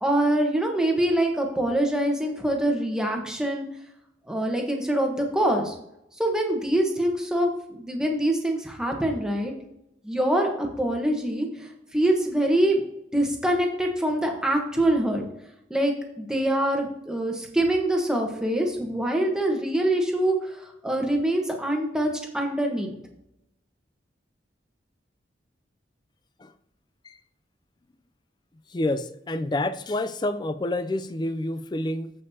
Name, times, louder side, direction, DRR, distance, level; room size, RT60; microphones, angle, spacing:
voice 1, 0.0-3.6 4.3-5.7 6.2-9.5 10.0-11.7 11.9-12.8 13.1-15.2 15.7-23.0, right 1 dB, 5° right, 1 dB, 1.1 m, -24 dB
voice 2, 28.7-32.1, left 1 dB, 25° left, 12 dB, 0.4 m, -28 dB
15.0 x 5.3 x 2.8 m, 0.82 s
head